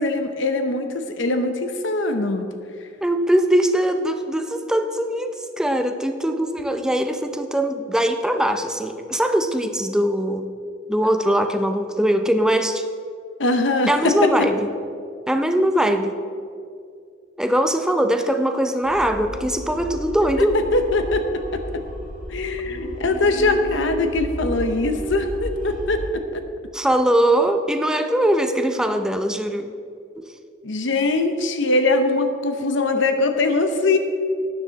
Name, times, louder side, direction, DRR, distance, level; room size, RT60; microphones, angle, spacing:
voice 1, 0.0-2.5 13.4-14.5 20.4-20.5 20.7-21.8 22.3-26.4 30.6-34.0, left 2 dB, 70° left, 7 dB, 0.8 m, -22 dB
voice 2, 3.0-10.5 10.9-12.9 13.9-14.7 15.3-16.2 17.4-20.6 26.7-29.7 30.2-30.3, right 1 dB, 5° right, 6 dB, 0.5 m, -21 dB
sound 1, 18.8-26.1, equal, 45° left, 3.1 m, -33 dB
12.0 x 9.8 x 4.0 m, 2.3 s
head